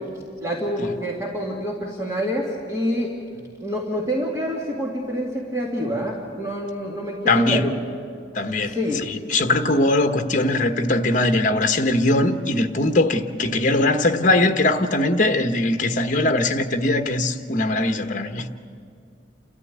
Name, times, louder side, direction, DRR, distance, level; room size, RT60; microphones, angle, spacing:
voice 1, 0.4-3.1 3.6-7.7 8.6-9.1, equal, 15° right, 2.2 m, -27 dB
voice 2, 7.3-7.7 8.3-18.5, left 2 dB, 45° left, 1.1 m, -21 dB
29.0 x 14.0 x 9.3 m
head